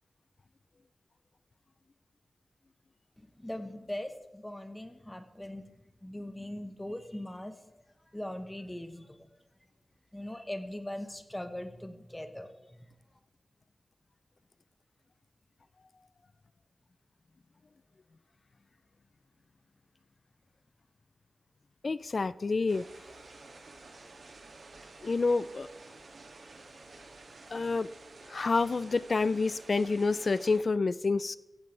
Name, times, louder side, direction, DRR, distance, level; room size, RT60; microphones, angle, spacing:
voice 1, 3.2-5.6 6.0-7.5 8.1-9.3 10.1-12.5, left 1 dB, 10° left, 1.3 m, -40 dB
voice 2, 21.8-22.8 25.0-25.7 27.5-27.9 28.3-31.4, left 3 dB, 50° left, 0.5 m, -28 dB
sound 1, 22.7-30.6, right 3 dB, 80° right, 2.4 m, -51 dB
16.0 x 15.5 x 3.4 m
wide cardioid pair, 110°, 0 cm